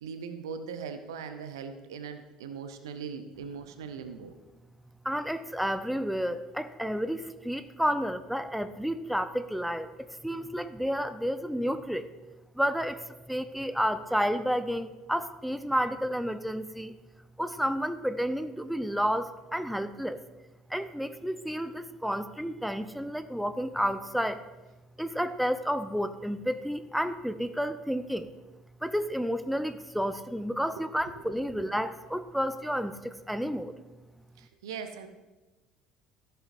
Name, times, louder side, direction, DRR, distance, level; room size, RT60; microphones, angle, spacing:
voice 1, 0.0-4.3 30.8-31.2 34.4-35.1, right 6 dB, 70° right, 8 dB, 0.7 m, -40 dB
voice 2, 5.0-9.9 10.2-12.0 12.6-16.9 17.4-20.2 20.7-24.4 25.0-28.3 28.8-33.7, equal, ahead, 11 dB, 0.6 m, -31 dB
15.0 x 6.8 x 2.6 m, 1.1 s
figure-of-eight pair, 60°, 3 cm